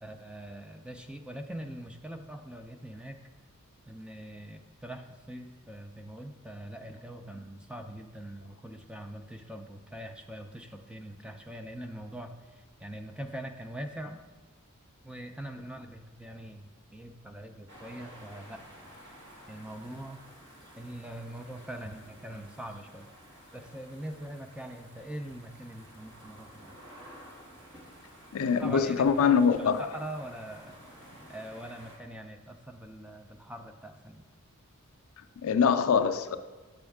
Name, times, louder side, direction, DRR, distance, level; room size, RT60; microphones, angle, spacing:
voice 1, 0.0-3.2 3.9-14.2 15.0-18.6 19.5-20.3 20.8-23.1 23.5-26.8 28.6-30.8 31.3-34.2, right 1 dB, 5° right, 0.4 m, -43 dB
sound 1, 17.7-32.0, equal, 55° right, 1.5 m, -52 dB
voice 2, 28.3-29.9 35.4-36.4, left 6 dB, 70° left, 0.4 m, -24 dB
8.0 x 6.2 x 3.5 m
head